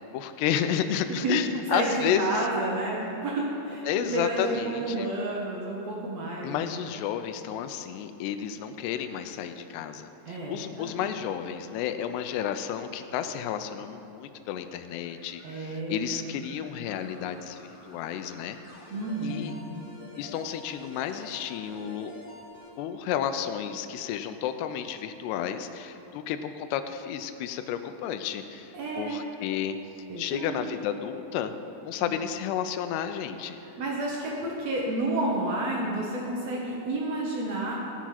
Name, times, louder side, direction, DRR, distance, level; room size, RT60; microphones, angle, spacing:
voice 1, 0.1-2.5 3.9-5.1 6.4-18.6 19.2-19.6 20.2-22.1 22.8-29.8 30.2-31.5 31.8-33.6, left 9 dB, 85° left, 8 dB, 2.7 m, -31 dB
voice 2, 1.7-6.8 10.2-10.9 15.4-16.7 18.9-19.9 28.7-29.2 30.1-30.6 32.0-32.1 33.6-37.7, right 2 dB, 80° right, -3 dB, 1.4 m, -31 dB
sound 1, 15.0-22.7, left 2 dB, 50° left, 1.6 m, -50 dB
17.5 x 6.0 x 5.7 m, 2.9 s
omnidirectional pair, 4.9 m